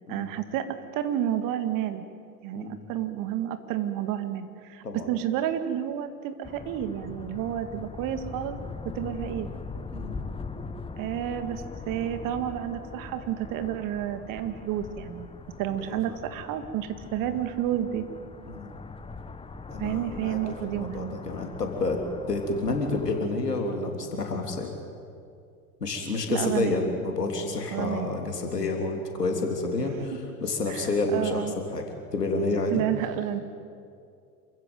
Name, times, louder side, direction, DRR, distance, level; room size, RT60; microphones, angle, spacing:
voice 1, 0.1-2.0 2.4-8.6 8.8-9.5 11.0-15.3 15.6-18.0 19.8-21.2 26.3-26.9 27.7-28.2 30.7-31.5 32.7-33.4, right 11 dB, 45° right, 9 dB, 2.1 m, -30 dB
sound 1, 6.4-23.2, left 4 dB, 10° left, 1.2 m, -41 dB
voice 2, 15.8-16.2 18.4-18.7 19.7-22.0 22.3-24.7 25.8-30.1 30.4-31.4 31.7-31.9 32.1-32.8, left 3 dB, 85° left, 3 dB, 3.3 m, -29 dB
27.5 x 15.5 x 9.3 m, 2.4 s
figure-of-eight pair, 80°, 47 cm